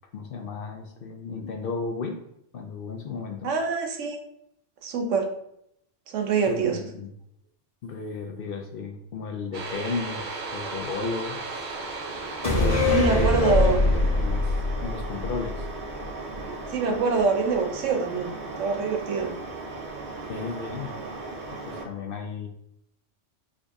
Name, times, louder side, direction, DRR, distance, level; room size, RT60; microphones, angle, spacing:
voice 1, 0.1-2.2 2.5-3.5 6.5-7.1 7.8-11.7 12.4-13.4 13.6-15.7 20.3-20.9 21.5-22.5, left 4 dB, 60° left, 4 dB, 0.6 m, -34 dB
voice 2, 3.4-4.2 4.8-5.3 6.1-6.9 12.9-13.8 16.7-19.4, right 4 dB, 90° right, 4 dB, 1.1 m, -25 dB
sound 1, 9.5-21.9, right 3 dB, 50° right, 0.6 m, -36 dB
sound 2, 12.4-16.0 16.3-16.4, left 2 dB, 30° left, 1.3 m, -23 dB
5.0 x 2.6 x 3.4 m, 0.75 s
omnidirectional pair, 1.3 m